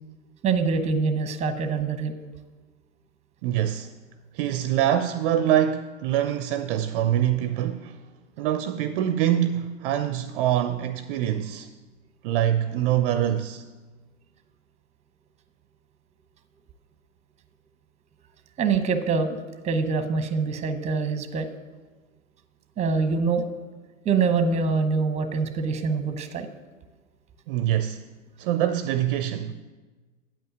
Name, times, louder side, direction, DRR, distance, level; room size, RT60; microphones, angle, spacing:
voice 1, 0.4-2.1 18.6-19.4 19.6-21.5 22.8-23.5 24.0-26.5, right 5 dB, 15° right, 0.8 m, -24 dB
voice 2, 3.4-3.9 4.3-8.0 8.4-11.7 12.2-13.6 27.5-28.0 28.4-29.5, right 11 dB, 45° right, 0.5 m, -24 dB
9.0 x 5.5 x 7.9 m
hypercardioid pair, 115°, 40 cm